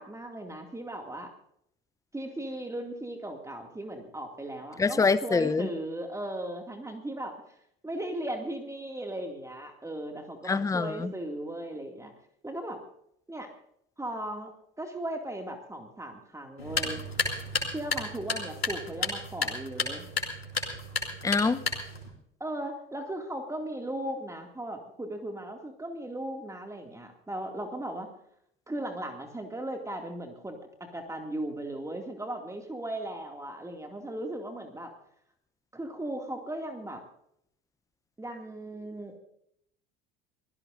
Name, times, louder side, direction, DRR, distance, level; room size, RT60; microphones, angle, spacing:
voice 1, 0.0-1.3 2.1-7.4 7.8-12.1 12.4-12.8 13.3-13.5 14.0-14.5 14.8-17.0 17.7-20.1 22.4-28.1 28.7-34.9 35.7-37.0 38.2-39.2, right 1 dB, 10° right, 4 dB, 2.3 m, -37 dB
voice 2, 4.8-5.7 10.5-11.1 21.2-21.6, left 4 dB, 10° left, 15 dB, 0.8 m, -25 dB
sound 1, 16.6-22.1, left 3 dB, 85° left, 3.7 m, -32 dB
24.5 x 16.5 x 2.6 m, 0.72 s
figure-of-eight pair, 65°, 30 cm